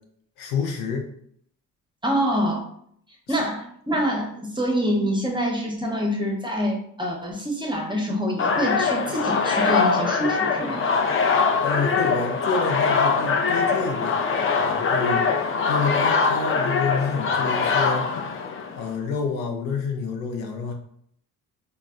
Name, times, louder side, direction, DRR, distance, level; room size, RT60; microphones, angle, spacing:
voice 1, 0.4-1.1 3.3-3.4 11.6-14.2 14.6-15.2 15.7-18.3 18.8-20.7, left 5 dB, 80° left, 3 dB, 0.6 m, -28 dB
voice 2, 2.0-2.7 3.3-10.9, equal, 10° right, 0 dB, 0.6 m, -26 dB
sound 1, 8.4-18.9, left 5 dB, 30° left, 0.4 m, -22 dB
3.9 x 2.1 x 2.3 m, 0.68 s
hypercardioid pair, 45°, 46 cm